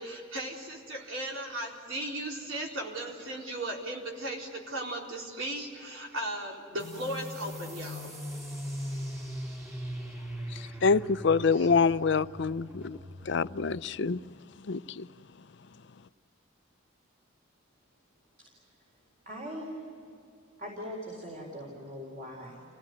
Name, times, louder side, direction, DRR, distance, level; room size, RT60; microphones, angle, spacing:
voice 1, 0.0-8.1 8.9-9.1 10.2-10.7 11.5-11.7, right 1 dB, 75° right, 4.2 m, -37 dB
sound 1, 6.8-14.0, equal, 15° right, 3.3 m, -40 dB
voice 2, 10.5-13.0 13.3-14.2 14.7-15.1, left 5 dB, 60° left, 0.5 m, -26 dB
voice 3, 19.3-19.8 20.6-22.6, equal, 40° right, 4.5 m, -40 dB
28.5 x 17.5 x 9.6 m
head